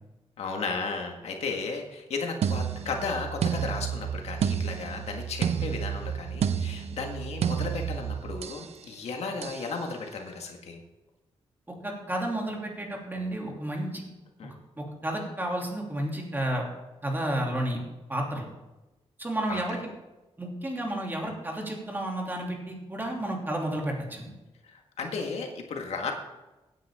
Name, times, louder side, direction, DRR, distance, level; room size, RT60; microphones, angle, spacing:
voice 1, 0.4-10.8 14.4-14.5 19.5-19.6 24.6-26.1, left 4 dB, 85° left, 2 dB, 1.8 m, -34 dB
sound 1, 2.4-8.7 9.4-9.7, right 8 dB, 80° right, 0.7 m, -30 dB
voice 2, 11.7-14.0 14.8-16.7 17.0-17.8 18.1-18.5 19.2-19.8 20.4-24.3, right 1 dB, 20° right, 0 dB, 2.8 m, -31 dB
16.0 x 9.4 x 3.7 m, 1.0 s
cardioid pair, 100°, 11 cm